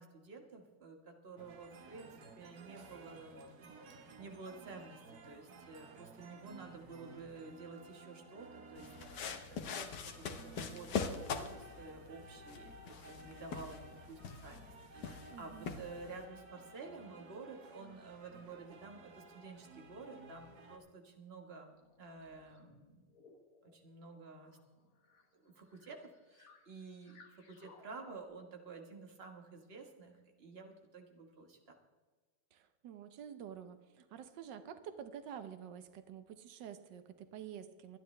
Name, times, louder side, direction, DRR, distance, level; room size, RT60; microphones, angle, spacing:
voice 1, 0.0-23.0 23.6-24.6 25.3-31.8, right 4 dB, 35° right, 3 dB, 1.7 m, -51 dB
sound 1, 1.4-20.8, right 3 dB, 65° right, 1.8 m, -56 dB
sound 2, 8.8-16.3, left 6 dB, 75° left, 1.7 m, -43 dB
voice 2, 15.3-15.8 32.5-38.0, right 8 dB, 90° right, 10 dB, 1.5 m, -49 dB
sound 3, 21.7-28.2, left 4 dB, 55° left, 1.8 m, -63 dB
24.0 x 10.0 x 3.3 m, 1.3 s
omnidirectional pair, 1.9 m